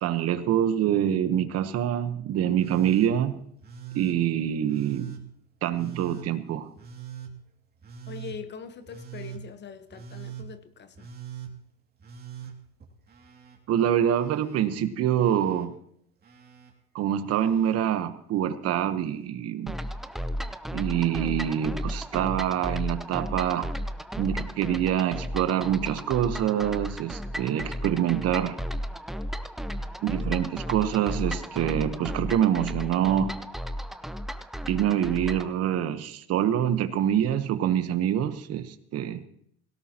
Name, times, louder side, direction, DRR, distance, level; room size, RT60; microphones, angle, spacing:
voice 1, 0.0-3.4 3.9-5.1 5.6-6.7 13.7-15.8 16.9-19.8 20.7-23.7 24.2-28.6 30.0-33.3 34.7-39.2, right 10 dB, 50° right, 1.1 m, -25 dB
Telephone, 2.6-3.1 3.6-4.2 4.7-5.2 5.7-6.3 6.8-7.3 7.8-8.4 8.9-9.4 9.9-10.5 10.9-11.5 12.0-13.6 13.8-14.6 15.2-15.7 16.2-16.7 17.3-17.8 19.0-19.1, right 9 dB, 30° right, 2.5 m, -42 dB
voice 2, 8.1-11.1, left 7 dB, 35° left, 1.2 m, -42 dB
sound 1, 19.7-35.5, equal, ahead, 0.7 m, -34 dB
17.5 x 17.0 x 3.0 m
supercardioid pair, 100°, 31 cm